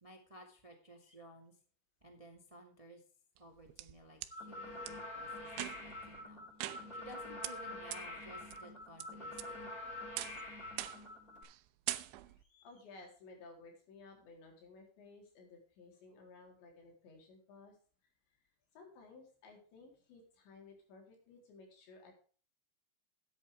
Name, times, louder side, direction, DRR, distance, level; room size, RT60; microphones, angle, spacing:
voice 1, 0.0-1.5 2.0-3.0 3.4-5.5 5.8-9.7, right 1 dB, 30° right, 3 dB, 0.6 m, -56 dB
sound 1, 3.4-4.3 4.9-5.0 5.5-6.0 6.6-7.2 7.4-7.5 7.9-8.0 8.5-9.0 9.4-9.8 10.2-10.4 10.8-11.1 11.4-11.6 11.9-12.4, right 16 dB, 85° right, 3.0 m, -42 dB
sound 2, 4.3-11.4, left 2 dB, 15° left, 6.3 m, -46 dB
voice 2, 12.3-17.8 18.7-22.1, left 3 dB, 70° left, 2 dB, 6.0 m, -57 dB
13.5 x 9.6 x 3.5 m, 0.42 s
omnidirectional pair, 5.3 m